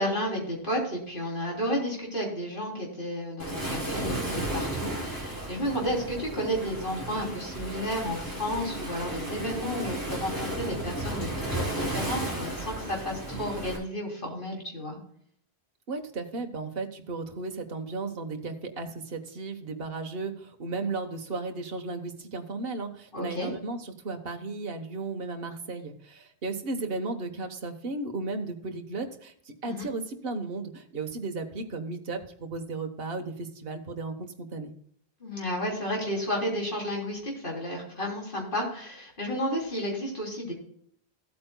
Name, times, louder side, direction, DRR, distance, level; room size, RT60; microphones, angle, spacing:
voice 1, 0.0-15.0 23.1-23.5 29.6-29.9 35.2-40.5, equal, 55° left, -2 dB, 3.5 m, -32 dB
Waves surf, 3.4-13.8, right 1 dB, 20° left, 4.1 m, -34 dB
voice 2, 15.9-34.7, right 3 dB, 60° right, 5 dB, 1.4 m, -35 dB
15.5 x 8.6 x 2.2 m, 0.64 s
omnidirectional pair, 1.1 m